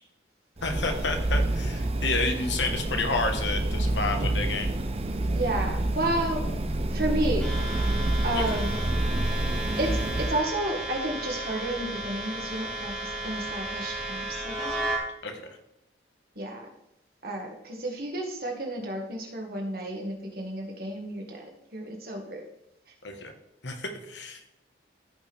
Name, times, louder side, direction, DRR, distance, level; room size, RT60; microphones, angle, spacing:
voice 1, 0.6-4.7 8.3-8.6 15.2-15.6 23.0-23.3 23.6-24.5, left 3 dB, 80° left, 5 dB, 1.4 m, -30 dB
sound 1, 0.6-10.4, right 1 dB, 35° right, 0.6 m, -28 dB
voice 2, 5.3-6.5 6.9-7.5 8.2-8.8 9.8-14.8 16.3-16.7 17.2-22.4, right 1 dB, 55° right, 0 dB, 1.8 m, -31 dB
sound 2, 7.4-15.0, right 1 dB, 5° left, 1.8 m, -34 dB
15.0 x 5.4 x 3.5 m, 0.83 s
head